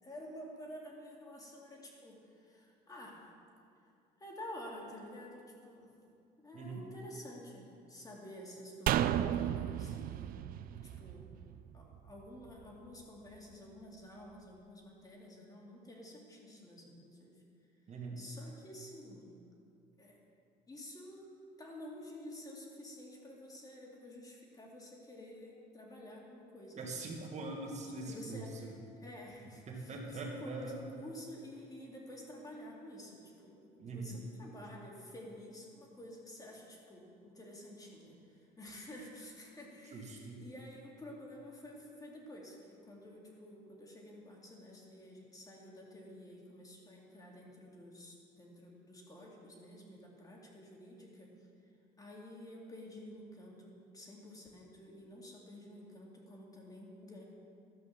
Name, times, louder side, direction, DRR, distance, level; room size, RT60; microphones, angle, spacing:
voice 1, 0.0-3.2 4.2-5.9 6.4-11.4 11.7-17.3 18.2-19.3 20.0-20.2 20.7-21.3 21.6-26.9 28.0-51.3 52.0-57.2, left 1 dB, 20° left, -2 dB, 2.3 m, -51 dB
sound 1, 8.9-12.2 12.5-12.6, right 11 dB, 60° right, 0.4 m, -34 dB
voice 2, 17.9-18.2 26.8-28.4 29.7-30.8 33.8-34.2 39.9-40.4, right 3 dB, 45° right, 0 dB, 1.9 m, -42 dB
12.5 x 5.4 x 7.2 m, 2.5 s
cardioid pair, 110°, 17 cm